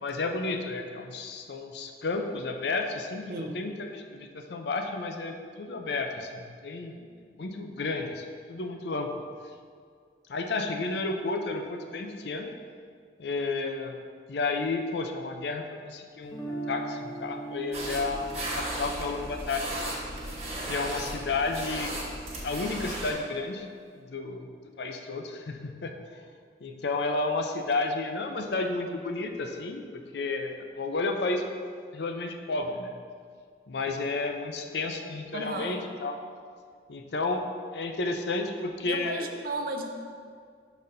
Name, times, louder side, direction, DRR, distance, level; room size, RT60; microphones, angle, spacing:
voice 1, 0.0-7.0 7.3-9.3 10.3-12.5 13.2-14.0 14.3-19.7 20.7-21.9 22.4-23.7 24.0-24.5 24.8-26.2 26.6-31.5 31.9-32.9 33.7-36.2 36.9-37.5 37.7-39.3, left 3 dB, 70° left, 4 dB, 0.5 m, -32 dB
voice 2, 3.3-3.6 35.3-35.8 38.8-40.0, right 2 dB, 55° right, 4 dB, 0.6 m, -34 dB
Guitar, 16.2-22.2, right 2 dB, 15° left, 0.7 m, -41 dB
sound 1, 17.7-23.1, right 1 dB, 35° right, 1.2 m, -35 dB
11.5 x 4.1 x 2.6 m, 2.1 s
head